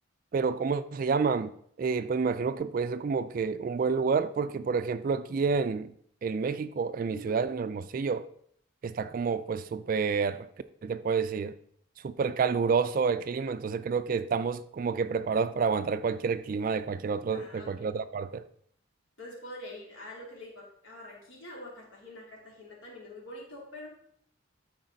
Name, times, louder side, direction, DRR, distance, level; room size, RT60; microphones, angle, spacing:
voice 1, 0.3-1.5 1.8-5.9 6.2-8.2 8.8-10.5 10.8-11.5 12.0-18.4, right 5 dB, 45° right, 0.3 m, -29 dB
voice 2, 17.3-18.0 19.2-23.9, left 1 dB, 70° left, 3.1 m, -45 dB
12.5 x 4.8 x 3.9 m
head